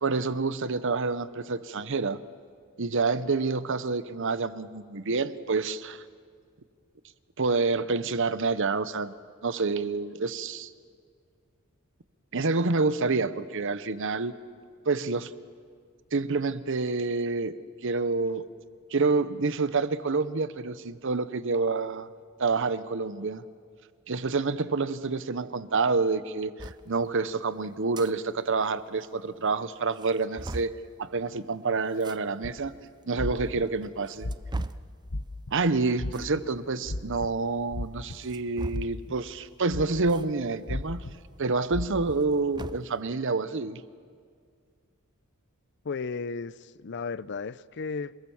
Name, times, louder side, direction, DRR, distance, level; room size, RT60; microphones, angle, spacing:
voice 1, 0.0-2.2 2.8-6.0 7.4-9.1 9.4-10.7 12.3-14.3 14.9-15.3 16.1-17.5 17.8-18.4 18.9-22.1 22.4-23.4 24.1-32.7 33.1-34.3 35.5-41.0 41.4-43.8, right 3 dB, 65° right, 0.9 m, -28 dB
sound 1, 26.6-26.8 27.7-28.1 28.5-28.6 28.8-28.9 29.5-29.6 29.9-30.8 31.9-32.2 33.0-33.1 33.8-34.9 36.1-36.3 38.1-39.1 40.1-40.3 40.6-40.7 42.0-42.9, right 2 dB, 20° right, 0.5 m, -38 dB
sound 2, 32.4-32.6 33.2-33.6 34.2-34.7 35.1-35.5 36.0-36.4 36.8-37.3 37.7-38.4 38.7-39.1 39.7-40.1 40.7-41.1 41.7-42.2, left 1 dB, 80° left, 1.2 m, -33 dB
voice 2, 45.8-48.2, left 4 dB, 55° left, 0.5 m, -34 dB
28.0 x 20.0 x 7.2 m
head